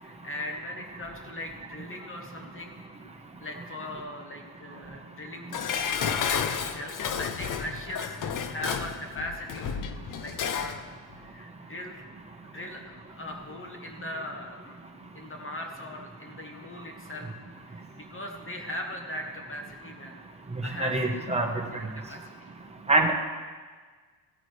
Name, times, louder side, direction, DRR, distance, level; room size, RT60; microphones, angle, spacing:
voice 1, 0.0-2.8 3.4-12.0 12.4-14.8 15.1-17.3 17.7-20.2 20.6-21.3 21.7-22.5, left 1 dB, 25° left, 2 dB, 1.1 m, -40 dB
Dishes pots and pans, 5.5-10.8 11.1-11.2, left 7 dB, 40° left, 0.6 m, -31 dB
voice 2, 20.5-21.6 22.9-23.1, right 2 dB, 15° right, 2 dB, 1.1 m, -25 dB
15.5 x 8.8 x 3.3 m, 1.5 s
cardioid pair, 135°, 49 cm